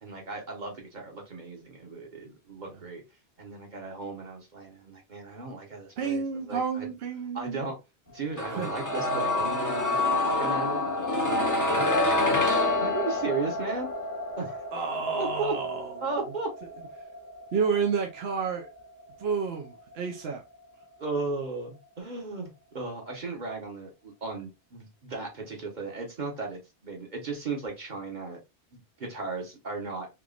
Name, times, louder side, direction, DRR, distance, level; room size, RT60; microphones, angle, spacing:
voice 1, 0.0-3.0 3.4-6.9 7.3-7.8 8.1-12.5 12.8-13.9 14.4-14.6 15.1-15.5 16.0-16.5 21.0-28.4 28.7-30.1, right 3 dB, 45° right, 1.2 m, -36 dB
voice 2, 6.0-7.6 8.5-8.7 14.7-16.3 17.5-18.7 19.2-20.4, right 5 dB, 70° right, 0.9 m, -30 dB
sound 1, 8.4-20.2 20.5-20.6, left 2 dB, 20° left, 0.7 m, -28 dB
3.6 x 3.0 x 2.4 m
omnidirectional pair, 1.1 m